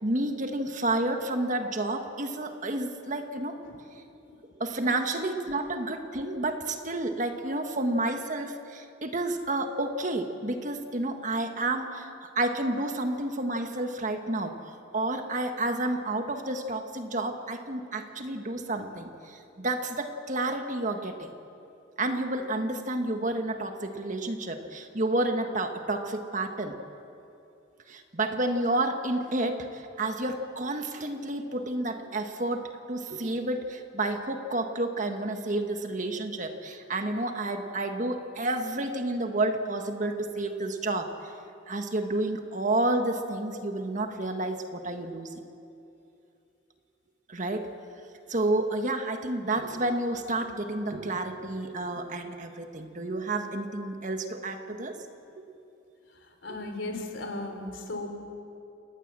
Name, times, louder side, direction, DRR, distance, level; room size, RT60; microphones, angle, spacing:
voice 1, 0.0-3.6 4.5-21.3 22.0-26.8 27.9-41.1 41.7-45.3 47.3-47.7 48.3-55.0, right 2 dB, 40° right, 6 dB, 1.6 m, -30 dB
voice 2, 56.4-58.1, left 2 dB, 75° left, 4 dB, 3.7 m, -36 dB
28.0 x 19.0 x 7.6 m, 2.7 s
head